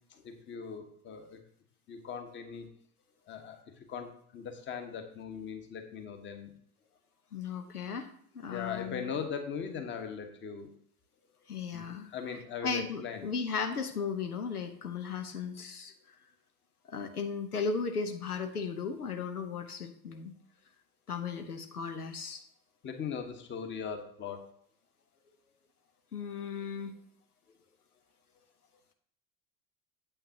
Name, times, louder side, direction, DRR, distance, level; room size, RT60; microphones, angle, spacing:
voice 1, 0.2-1.4 1.9-2.7 3.3-3.6 3.9-6.5 8.5-10.7 11.7-13.3 22.8-24.4, left 6 dB, 25° left, 6 dB, 1.4 m, -39 dB
voice 2, 7.3-8.1 8.3-9.1 11.5-12.1 12.6-15.9 16.9-20.3 21.1-22.4 26.1-26.9, left 5 dB, 80° left, 7 dB, 1.0 m, -36 dB
9.1 x 8.1 x 2.9 m, 0.64 s
figure-of-eight pair, 85°, 45 cm